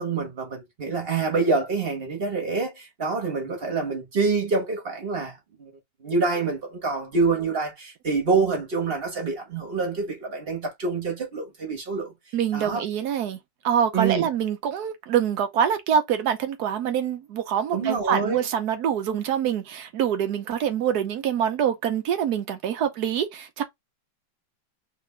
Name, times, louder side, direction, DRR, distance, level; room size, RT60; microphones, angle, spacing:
voice 1, 0.0-5.7 6.0-12.1 12.5-12.8 13.9-14.3 17.7-18.4, right 4 dB, 35° right, 1.1 m, -26 dB
voice 2, 12.3-13.4 13.6-23.6, right 9 dB, 65° right, 1.1 m, -25 dB
3.2 x 2.9 x 3.2 m
omnidirectional pair, 2.1 m